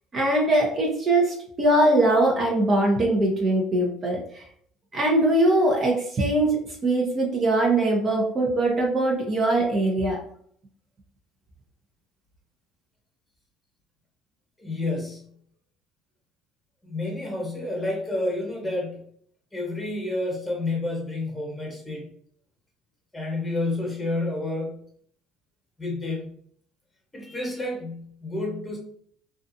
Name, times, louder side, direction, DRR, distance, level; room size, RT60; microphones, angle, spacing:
voice 1, 0.1-4.4 4.9-6.6 6.8-10.2, right 1 dB, 35° right, -1 dB, 0.7 m, -22 dB
voice 2, 14.6-15.4 16.8-19.1 19.5-22.1 23.1-24.9 25.8-26.4 27.1-28.8, left 2 dB, 10° left, -1 dB, 1.2 m, -30 dB
2.5 x 2.3 x 2.6 m, 0.62 s
supercardioid pair, 95°, 0 cm